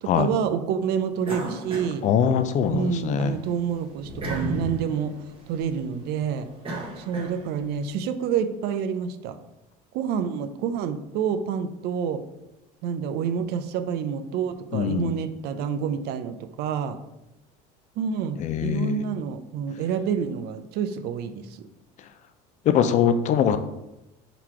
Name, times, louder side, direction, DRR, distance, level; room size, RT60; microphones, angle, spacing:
voice 1, 0.0-2.0 2.7-5.1 5.5-6.5 7.0-9.4 9.9-12.2 12.8-17.0 18.0-21.7, right 7 dB, 60° right, 10 dB, 0.4 m, -28 dB
sound 1, 1.2-2.8 3.2-7.8, right 1 dB, 25° right, 1.1 m, -35 dB
voice 2, 2.0-3.4 14.7-15.1 18.4-19.0 22.7-23.6, left 8 dB, 40° left, 10 dB, 0.4 m, -22 dB
4.0 x 2.9 x 4.5 m, 0.93 s
cardioid pair, 125°, 19 cm